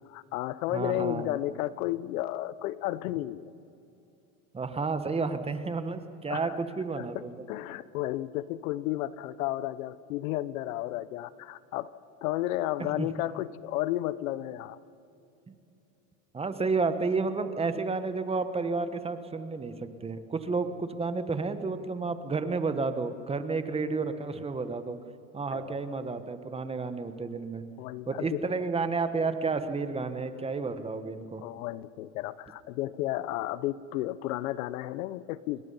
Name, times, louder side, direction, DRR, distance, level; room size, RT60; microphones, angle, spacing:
voice 1, 0.1-3.5 6.3-6.6 7.0-11.9 12.2-14.8 25.5-25.8 27.8-28.4 31.4-35.6, left 15 dB, 75° left, 17 dB, 0.9 m, -33 dB
voice 2, 0.7-1.3 4.5-7.3 12.8-13.1 15.5-15.6 16.3-25.0 25.3-27.6 28.1-31.4, right 4 dB, 15° right, 10 dB, 1.2 m, -31 dB
27.5 x 22.5 x 5.5 m, 2.7 s
supercardioid pair, 130°, 42 cm